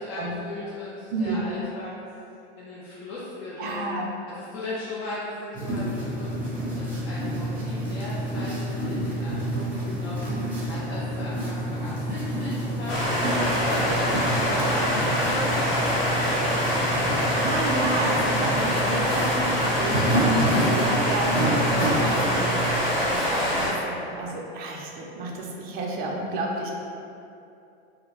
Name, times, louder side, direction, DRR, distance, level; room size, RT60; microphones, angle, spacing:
voice 1, 0.0-1.9 2.6-3.8 4.4-6.4 6.7-11.6 11.8-15.8, left 2 dB, 45° left, -8 dB, 0.5 m, -37 dB
voice 2, 1.1-1.5 3.6-4.1 16.8-26.7, right 2 dB, 30° right, -1 dB, 0.4 m, -31 dB
sound 1, 5.5-22.6, right 1 dB, 5° right, 0.8 m, -28 dB
sound 2, 12.9-23.7, equal, 75° left, 1.1 m, -25 dB
2.4 x 2.1 x 3.0 m, 2.7 s
hypercardioid pair, 115°, 32 cm